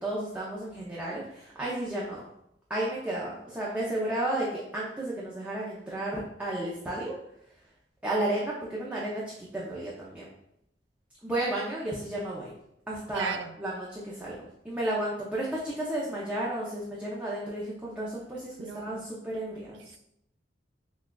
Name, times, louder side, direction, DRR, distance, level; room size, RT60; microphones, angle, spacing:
voice 1, 0.0-2.2 2.7-7.1 8.0-10.3 11.2-12.5 12.9-14.4 14.6-19.8, right 1 dB, 10° right, -7 dB, 0.6 m, -33 dB
voice 2, 13.1-13.5 18.6-19.1 19.8-20.0, right 7 dB, 70° right, 9 dB, 0.3 m, -36 dB
5.9 x 2.3 x 2.3 m, 0.77 s
head